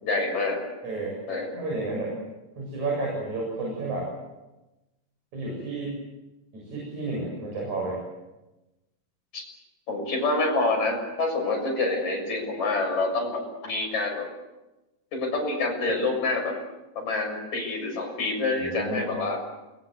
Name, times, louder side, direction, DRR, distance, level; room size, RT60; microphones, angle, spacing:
voice 1, 0.0-0.6 1.3-1.5 9.3-9.4 9.9-14.3 15.1-16.6 17.0-19.4, left 3 dB, 55° left, 2 dB, 7.6 m, -27 dB
voice 2, 0.8-1.2 1.5-2.2 2.6-4.1 5.3-6.0 6.5-8.0 18.6-19.1, right 2 dB, 55° right, -2 dB, 9.0 m, -31 dB
29.0 x 22.5 x 8.2 m, 1.0 s
omnidirectional pair, 3.9 m